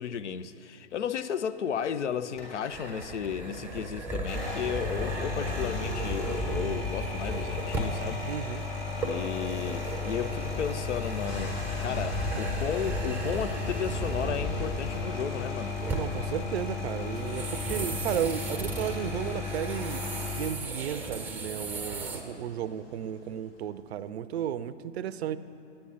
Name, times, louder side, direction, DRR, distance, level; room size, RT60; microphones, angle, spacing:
voice 1, 0.0-8.2 9.0-15.7, left 7 dB, 75° left, 0.5 m, -34 dB
sound 1, 2.3-3.5 4.1-20.5, left 4 dB, 30° left, 2.5 m, -35 dB
sound 2, 2.7-8.1 9.0-15.3 15.7-16.3 17.1-22.2, right 2 dB, 5° right, 0.6 m, -35 dB
voice 2, 8.3-8.7 15.9-20.0 20.4-25.4, right 10 dB, 60° right, 0.5 m, -34 dB
sound 3, 11.2-24.1, left 3 dB, 55° left, 1.2 m, -51 dB
9.6 x 8.8 x 5.5 m
figure-of-eight pair, 115°, 36 cm